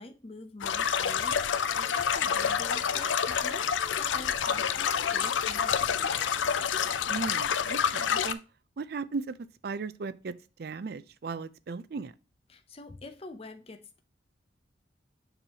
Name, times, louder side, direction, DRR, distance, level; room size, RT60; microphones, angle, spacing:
voice 1, 0.0-6.7 12.5-14.0, left 2 dB, 30° left, 0.6 m, -46 dB
sound 1, 0.6-8.3, left 7 dB, 80° left, 0.5 m, -28 dB
voice 2, 7.1-8.4 8.8-9.4 9.6-12.1, right 4 dB, 55° right, 0.4 m, -36 dB
7.0 x 5.4 x 2.8 m
head